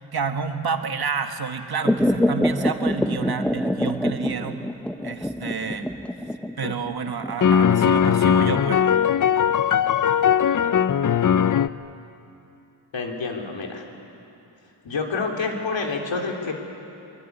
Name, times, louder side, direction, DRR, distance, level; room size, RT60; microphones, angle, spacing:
voice 1, 0.0-4.7 5.0-5.9 6.6-8.9, right 5 dB, 55° right, 6 dB, 1.6 m, -29 dB
sound 1, 1.8-10.7 11.1-11.2, equal, 5° left, 0.7 m, -26 dB
sound 2, 6.6-6.7 7.4-11.7, left 8 dB, 45° left, 0.6 m, -19 dB
voice 2, 12.9-13.8 14.8-16.5, left 4 dB, 75° left, 1 dB, 3.5 m, -28 dB
23.5 x 22.5 x 9.7 m, 2.8 s
wide cardioid pair, 130°, 45 cm